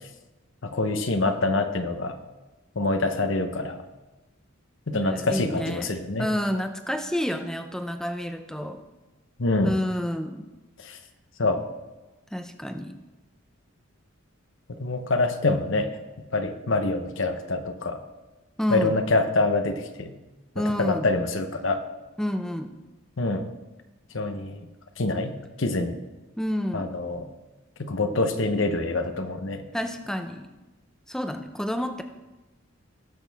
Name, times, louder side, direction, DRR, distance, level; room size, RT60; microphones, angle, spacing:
voice 1, 0.6-2.2 2.8-3.8 4.9-6.3 9.4-9.8 10.8-11.0 11.4-11.6 14.8-16.0 16.3-18.0 18.7-20.1 20.6-21.8 23.2-23.5 24.1-24.7 25.0-26.0 26.7-27.3 27.8-29.6, left 2 dB, 65° left, 7 dB, 0.9 m, -26 dB
voice 2, 4.9-8.8 9.6-10.5 12.3-13.0 18.6-18.9 20.6-21.1 22.2-22.7 26.4-26.9 29.7-30.5 31.1-32.0, equal, 5° left, 7 dB, 0.6 m, -29 dB
19.0 x 6.5 x 3.5 m, 1.1 s
head